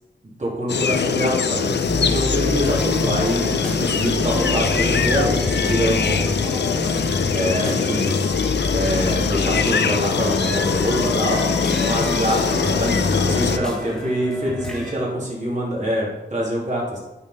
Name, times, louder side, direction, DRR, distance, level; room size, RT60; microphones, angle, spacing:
voice 1, 0.4-1.7 2.0-3.5 3.7-6.5 7.3-8.1 8.7-11.4 11.8-17.0, equal, 40° right, -4 dB, 3.1 m, -25 dB
sound 1, 0.7-13.6, left 6 dB, 65° left, 0.5 m, -22 dB
sound 2, 1.9-14.9, left 1 dB, 5° left, 1.3 m, -27 dB
9.3 x 4.3 x 5.2 m, 1.0 s
wide cardioid pair, 90°, 19 cm